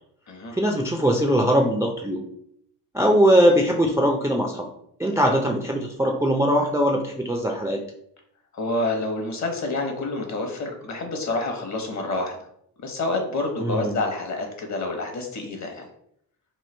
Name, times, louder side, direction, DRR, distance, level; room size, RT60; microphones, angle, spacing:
voice 1, 0.5-2.2 2.9-4.7 5.0-7.8 13.6-14.0, equal, 10° right, 0 dB, 0.4 m, -21 dB
voice 2, 8.5-12.4 12.8-15.9, left 2 dB, 45° left, 3 dB, 1.0 m, -28 dB
3.1 x 2.3 x 3.2 m, 0.71 s
supercardioid pair, 70°, 40 cm